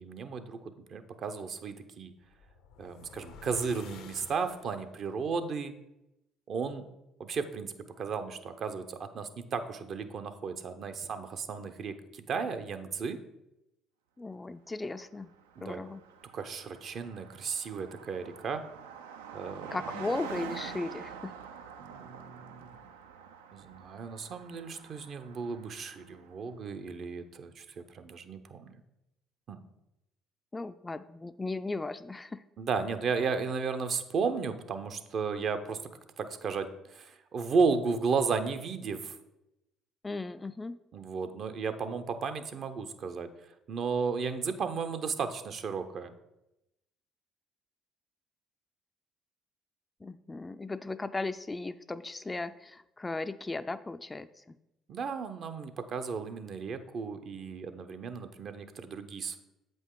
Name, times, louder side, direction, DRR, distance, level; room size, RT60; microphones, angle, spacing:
voice 1, 0.0-2.1 2.8-5.7 6.5-6.8 7.2-13.2 15.6-15.8 16.3-18.6 19.3-19.8 21.8-22.7 23.5-28.8 29.5-29.6 32.6-35.8 36.2-39.2 40.9-43.3 43.7-46.1 54.9-59.4, right 5 dB, 55° right, 8 dB, 0.7 m, -34 dB
sound 1, 2.2-5.0, left 7 dB, 75° left, 0.6 m, -51 dB
voice 2, 14.2-15.3 15.6-16.0 19.7-21.3 30.5-32.4 40.0-40.8 50.0-54.6, left 3 dB, 20° left, 12 dB, 0.3 m, -37 dB
Car passing by, 15.0-15.1 15.3-26.4, right 7 dB, 90° right, 0.4 m, -46 dB
7.8 x 5.2 x 3.7 m, 0.91 s
hypercardioid pair, 60°, 0 cm